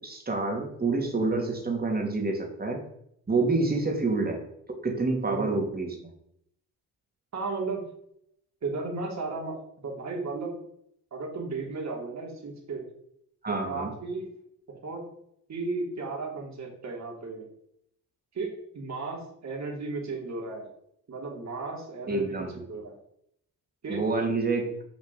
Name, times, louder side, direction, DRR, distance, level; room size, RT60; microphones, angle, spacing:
voice 1, 0.0-2.8 3.3-4.4 4.8-5.9 13.4-13.9 22.1-22.5 23.9-24.7, right 3 dB, 25° right, 2 dB, 3.1 m, -27 dB
voice 2, 5.2-5.6 7.3-7.8 8.6-10.6 11.1-12.9 13.5-14.3 14.7-15.1 15.5-17.5 18.3-20.7 21.1-23.0 23.8-24.0, right 3 dB, 45° right, -1 dB, 3.4 m, -34 dB
7.8 x 5.1 x 7.0 m, 0.73 s
supercardioid pair, 65°, 38 cm